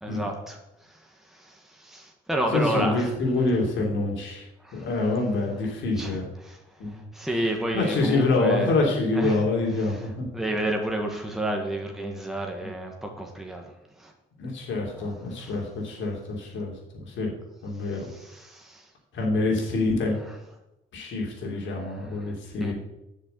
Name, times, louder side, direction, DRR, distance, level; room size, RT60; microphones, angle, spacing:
voice 1, 0.0-3.1 4.6-4.9 6.0-8.8 9.1-9.5 9.8-10.0 10.3-13.7 14.0-14.1 15.0-15.6 17.7-18.9 21.9-22.3 22.6-22.7, right 1 dB, ahead, 1 dB, 1.7 m, -31 dB
voice 2, 2.5-4.5 4.7-6.3 6.8-7.0 7.7-10.2 12.6-12.7 14.4-17.3 17.6-18.1 19.1-20.2 20.9-22.7, left 2 dB, 75° left, 0 dB, 3.3 m, -26 dB
8.0 x 6.5 x 8.2 m, 0.92 s
cardioid pair, 90°, 20 cm